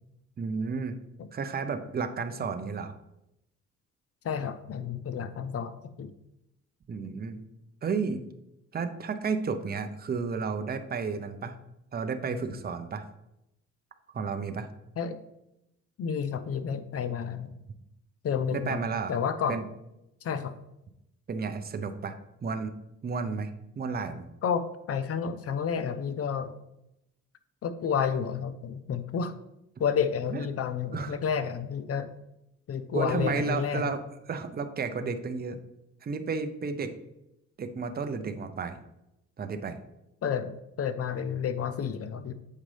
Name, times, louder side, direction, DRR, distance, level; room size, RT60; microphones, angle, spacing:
voice 1, 0.4-1.0 1.3-2.9 6.9-7.4 7.8-8.2 8.7-11.6 11.9-13.1 14.1-14.7 18.5-19.2 19.5-19.6 21.3-22.1 22.4-22.7 23.0-23.5 23.8-24.2 30.3-30.5 30.9-31.2 32.9-34.0 34.3-35.6 36.0-36.9 37.6-38.8 39.4-39.8, right 5 dB, 30° right, 8 dB, 0.7 m, -32 dB
voice 2, 4.2-6.1 15.0-15.2 16.0-17.5 18.2-18.8 19.1-19.6 20.2-20.5 24.4-26.5 27.6-29.3 29.8-32.1 32.7-34.0 40.2-42.3, left 7 dB, 50° left, 11 dB, 0.6 m, -30 dB
7.5 x 5.0 x 3.3 m, 0.85 s
cardioid pair, 90°, 30 cm